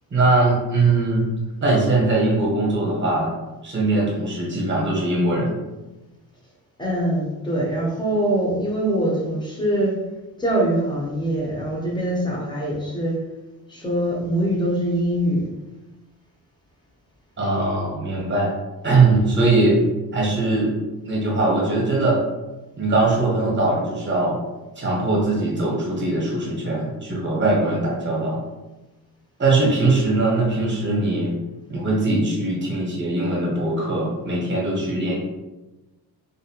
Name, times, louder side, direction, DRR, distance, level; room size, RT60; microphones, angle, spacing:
voice 1, 0.1-1.3 1.6-3.3 3.6-5.6 17.4-18.5 18.8-19.8 20.1-20.7 21.0-22.2 22.8-24.4 24.8-28.4 29.4-31.4 31.7-35.1, right 2 dB, 30° right, -4 dB, 0.9 m, -21 dB
voice 2, 6.8-10.0 10.4-13.2 13.7-15.5, right 1 dB, 10° left, -4 dB, 0.6 m, -23 dB
2.5 x 2.1 x 2.8 m, 1.1 s
cardioid pair, 135°, 40 cm